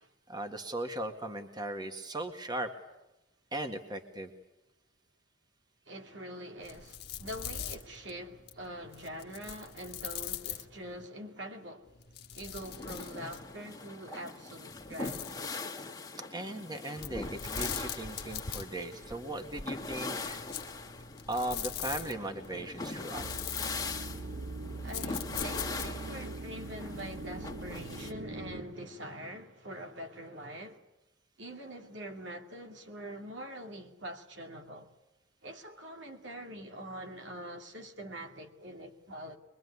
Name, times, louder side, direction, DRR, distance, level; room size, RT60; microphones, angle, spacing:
voice 1, 0.3-2.7 3.5-4.3 16.3-20.4 21.3-23.3, right 1 dB, 20° right, 1.9 m, -38 dB
voice 2, 5.9-11.9 12.3-15.3 24.8-30.8 31.4-34.9 35.4-39.4, equal, 65° right, 2.6 m, -44 dB
sound 1, 6.6-11.1 11.9-13.6 14.7-15.5 17.0-26.1, left 9 dB, 55° left, 1.5 m, -43 dB
sound 2, 12.6-28.1, left 3 dB, 20° left, 2.1 m, -41 dB
sound 3, 23.2-28.6, right 2 dB, 80° right, 1.2 m, -42 dB
23.5 x 23.0 x 9.7 m
head